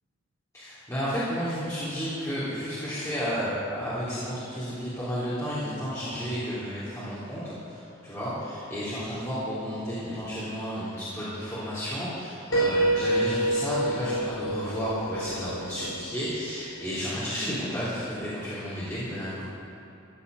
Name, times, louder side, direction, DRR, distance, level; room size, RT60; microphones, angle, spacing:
voice 1, 0.5-19.4, equal, 15° left, -13 dB, 3.5 m, -32 dB
Piano, 12.5-16.3, right 1 dB, 80° left, 4.0 m, -27 dB
14.5 x 8.7 x 8.1 m, 2.9 s
head